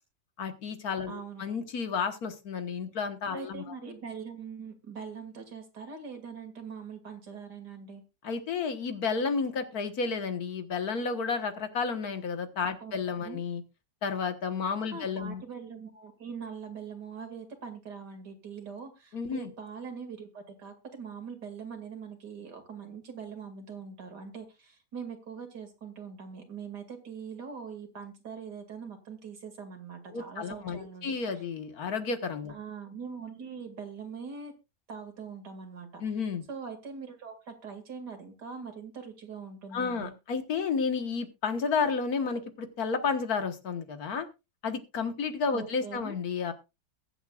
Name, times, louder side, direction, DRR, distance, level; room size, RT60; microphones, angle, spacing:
voice 1, 0.4-3.6 8.2-13.6 14.0-15.4 19.1-19.5 30.1-32.5 36.0-36.5 39.7-44.3 44.6-46.5, left 5 dB, 65° left, 8 dB, 1.8 m, -31 dB
voice 2, 1.1-1.4 3.3-8.0 12.8-12.9 13.2-13.4 14.9-31.4 32.5-34.5 34.9-36.0 36.5-40.1 45.5-46.2, right 6 dB, 80° right, 5 dB, 2.9 m, -42 dB
22.0 x 7.9 x 2.4 m, 0.26 s
omnidirectional pair, 1.8 m